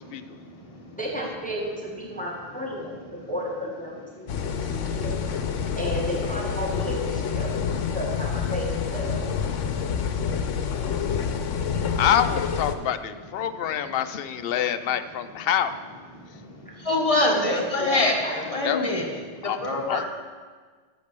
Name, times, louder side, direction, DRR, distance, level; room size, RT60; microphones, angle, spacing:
voice 1, 1.0-4.3 4.6-5.2 5.7-7.5 7.9-9.2 17.2-18.4, equal, 5° left, -3 dB, 1.4 m, -32 dB
sound 1, 4.3-12.8, left 6 dB, 80° left, 1.1 m, -28 dB
voice 2, 12.0-15.7 18.6-18.8 19.4-19.6 19.9-20.0, left 9 dB, 60° left, 11 dB, 0.7 m, -26 dB
voice 3, 16.8-19.1 19.4-20.0, left 2 dB, 30° left, 0 dB, 1.4 m, -24 dB
8.4 x 6.7 x 6.7 m, 1.5 s
omnidirectional pair, 1.2 m